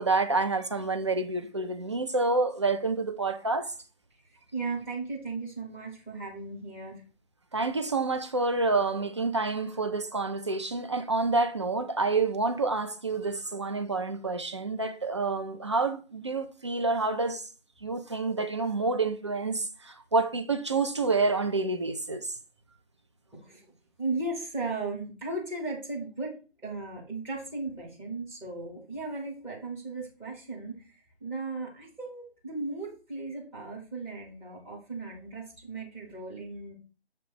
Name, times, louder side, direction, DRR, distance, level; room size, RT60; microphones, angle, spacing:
voice 1, 0.0-3.7 7.5-17.4 17.8-22.3, right 3 dB, 30° right, 0.4 m, -28 dB
voice 2, 4.5-6.9 8.9-9.0 23.5-23.6 24.0-26.3 26.6-30.7 31.2-36.8, right 3 dB, 5° right, 0.9 m, -36 dB
6.9 x 3.1 x 4.8 m
figure-of-eight pair, 150°, 32 cm